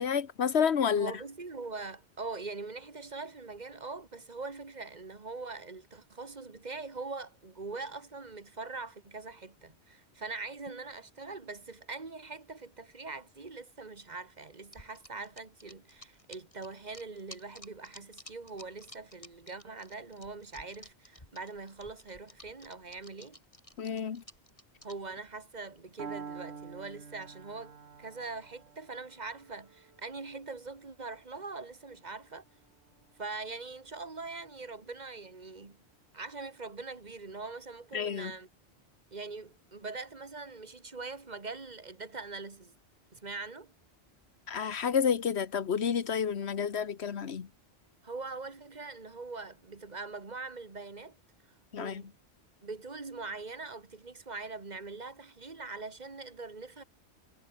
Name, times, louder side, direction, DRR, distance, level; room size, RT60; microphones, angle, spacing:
voice 1, 0.0-1.1 23.8-24.2 37.9-38.3 44.5-47.5 51.7-52.0, left 7 dB, 75° left, 1.5 m, -30 dB
voice 2, 1.0-23.4 24.8-32.5 33.2-35.8 36.1-38.5 39.1-42.7 43.1-43.7 48.0-51.2 51.8-52.1 52.6-56.8, right 3 dB, 40° right, 1.8 m, -42 dB
sound 1, 14.7-25.1, left 1 dB, 30° left, 8.2 m, -53 dB
Piano, 26.0-33.9, right 6 dB, 70° right, 1.7 m, -49 dB
omnidirectional pair, 1.1 m